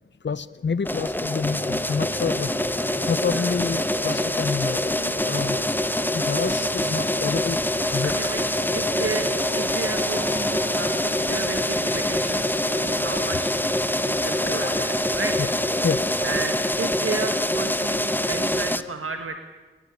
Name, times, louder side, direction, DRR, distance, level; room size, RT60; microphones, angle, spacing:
voice 1, 0.2-2.5 3.1-5.6 6.1-7.6 7.9-8.1 14.6-14.7 15.4-15.5 15.8-16.0, left 5 dB, 60° left, 16 dB, 0.7 m, -28 dB
sound 1, 0.8-18.8, left 1 dB, 10° left, 1.1 m, -25 dB
sound 2, 1.4-16.4, right 1 dB, 25° right, 3.6 m, -38 dB
voice 2, 3.2-3.5 8.0-8.4 8.7-9.3 9.5-15.5 16.2-19.4, right 4 dB, 80° right, 5 dB, 1.7 m, -33 dB
sound 3, 7.7-8.8 9.2-15.1, left 3 dB, 90° left, 4.1 m, -44 dB
26.0 x 23.5 x 8.5 m, 1.3 s
wide cardioid pair, 65°, 21 cm